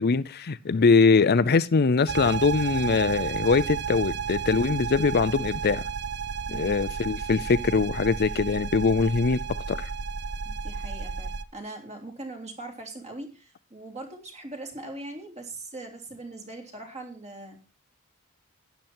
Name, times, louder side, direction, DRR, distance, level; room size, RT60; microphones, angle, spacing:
voice 1, 0.0-5.8 6.5-9.4 9.7-9.9, left 4 dB, 50° left, 0.5 m, -22 dB
sound 1, 2.1-11.4, right 6 dB, 55° right, 0.8 m, -32 dB
voice 2, 6.5-6.9 10.4-17.6, right 2 dB, 30° right, 3.3 m, -41 dB
12.0 x 10.5 x 4.3 m
head